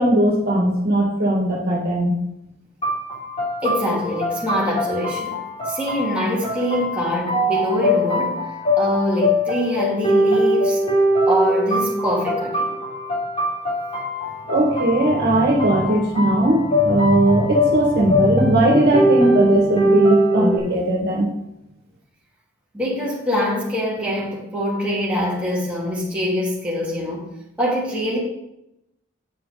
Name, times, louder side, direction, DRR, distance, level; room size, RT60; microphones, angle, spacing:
voice 1, 0.0-2.1 14.5-21.3, right 1 dB, 55° right, -1 dB, 2.0 m, -18 dB
sound 1, 2.8-20.6, left 1 dB, 30° left, 3.5 m, -22 dB
voice 2, 3.6-5.4 5.6-8.4 8.8-10.8 11.3-12.7 22.7-27.2 27.6-28.2, equal, 5° right, -7 dB, 2.9 m, -23 dB
8.7 x 6.3 x 5.0 m, 0.84 s
head